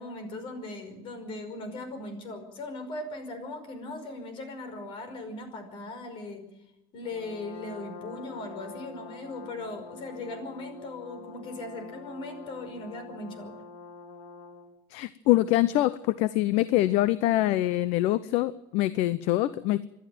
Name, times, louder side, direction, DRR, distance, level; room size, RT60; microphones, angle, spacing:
voice 1, 0.0-6.5 6.9-13.5, left 2 dB, 50° left, 9 dB, 5.4 m, -39 dB
Brass instrument, 7.0-14.8, left 4 dB, 90° left, 2.8 m, -46 dB
voice 2, 14.9-19.9, left 15 dB, 70° left, 16 dB, 0.7 m, -24 dB
27.0 x 12.0 x 9.2 m, 0.85 s
cardioid pair, 135°, 11 cm